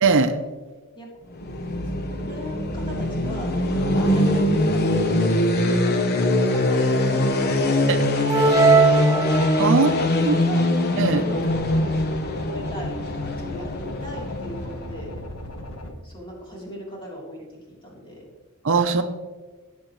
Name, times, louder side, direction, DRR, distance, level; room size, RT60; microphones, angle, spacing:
voice 1, 0.0-0.4 7.9-8.0 9.6-9.9 10.2-10.4 11.0-11.2 18.6-19.0, right 4 dB, 60° right, 8 dB, 0.7 m, -19 dB
sound 1, 1.3-15.2, left 1 dB, 45° left, 0.9 m, -22 dB
voice 2, 1.8-4.8 5.1-9.3 9.7-10.7 11.1-11.8 12.5-15.1 16.0-18.3, equal, 25° left, -4 dB, 3.4 m, -37 dB
sound 2, 8.3-10.0, right 4 dB, 15° right, 0.4 m, -19 dB
sound 3, 11.5-15.9, left 1 dB, 75° left, 1.3 m, -37 dB
17.5 x 7.4 x 3.1 m, 1.3 s
head